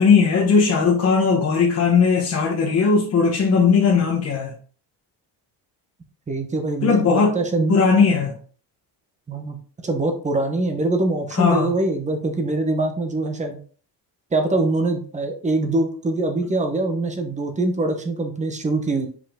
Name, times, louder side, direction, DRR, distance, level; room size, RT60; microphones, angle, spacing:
voice 1, 0.0-4.5 6.8-7.4 7.7-8.3 11.3-11.7, left 5 dB, 35° left, -2 dB, 1.1 m, -18 dB
voice 2, 6.3-7.8 9.3-9.6 9.8-13.6 14.3-19.1, right 2 dB, 15° right, 5 dB, 1.0 m, -23 dB
5.5 x 5.1 x 3.6 m, 0.42 s
cardioid pair, 170°, 41 cm